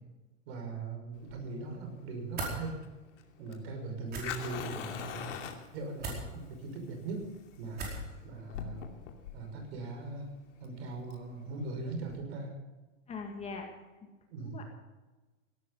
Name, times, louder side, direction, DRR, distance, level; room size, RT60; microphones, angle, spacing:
voice 1, 0.5-2.7 3.4-5.4 5.7-7.3 7.6-7.9 8.2-8.8 9.3-10.3 10.6-12.5 14.3-14.7, right 3 dB, 50° right, 4 dB, 5.9 m, -40 dB
Fire, 1.1-12.2, left 8 dB, 65° left, 2.8 m, -44 dB
sound 1, 2.3-2.6 4.1-4.3 6.0-6.2 7.7-8.1, right 3 dB, 25° right, 4.7 m, -37 dB
voice 2, 13.1-13.7 14.0-14.1 14.4-14.6, left 4 dB, 15° left, 3 dB, 1.9 m, -41 dB
17.0 x 13.0 x 5.6 m, 1.2 s
hypercardioid pair, 145°, 39 cm